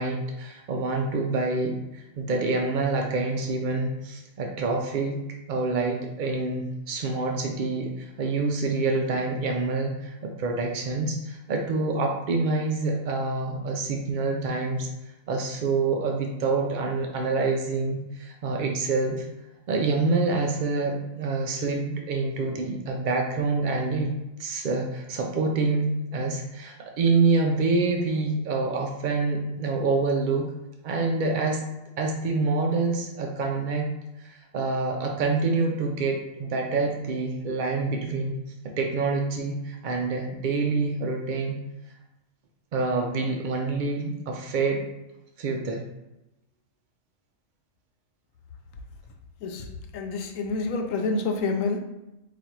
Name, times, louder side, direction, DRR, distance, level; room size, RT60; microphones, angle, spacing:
voice 1, 0.0-5.2 5.5-14.9 15.3-19.3 19.7-24.1 24.4-30.5 30.8-31.6 32.0-33.9 34.2-38.3 38.8-41.6 42.7-44.8 45.4-45.8, right 3 dB, 75° right, 2 dB, 0.4 m, -26 dB
voice 2, 49.9-51.8, left 3 dB, 85° left, 4 dB, 1.0 m, -28 dB
4.1 x 2.5 x 4.4 m, 0.94 s
omnidirectional pair, 1.4 m